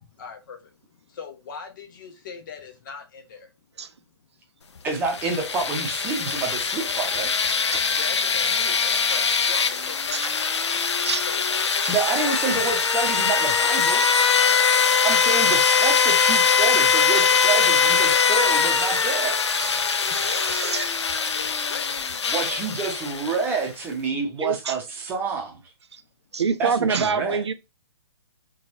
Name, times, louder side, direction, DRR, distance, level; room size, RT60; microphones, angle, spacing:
voice 1, 0.2-0.7 1.1-3.5 7.9-11.0 11.3-11.4 12.1-12.8 17.3-22.0 22.3-22.6, left 5 dB, 45° left, 0.8 m, -41 dB
voice 2, 4.8-7.3 11.9-14.0 15.0-19.4 22.3-25.6 26.6-27.4, right 4 dB, 15° right, 0.7 m, -28 dB
sound 1, 5.0-23.6, left 6 dB, 80° left, 0.4 m, -22 dB
voice 3, 19.5-20.9 24.4-24.7 25.9-26.0 26.3-27.5, right 5 dB, 75° right, 0.4 m, -27 dB
2.9 x 2.3 x 2.6 m
figure-of-eight pair, 130°, 14 cm